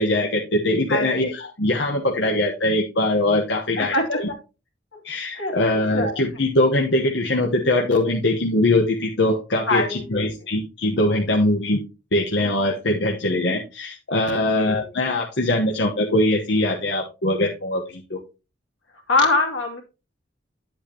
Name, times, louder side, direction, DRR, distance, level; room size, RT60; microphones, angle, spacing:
voice 1, 0.0-4.3 5.0-11.8 12.1-18.2, left 1 dB, 65° left, 0 dB, 1.1 m, -22 dB
voice 2, 0.9-1.3 3.8-4.4 5.3-6.2 9.7-10.3 14.4-14.7 19.1-19.8, left 2 dB, 85° left, 2 dB, 2.6 m, -24 dB
10.5 x 7.9 x 2.9 m, 0.29 s
head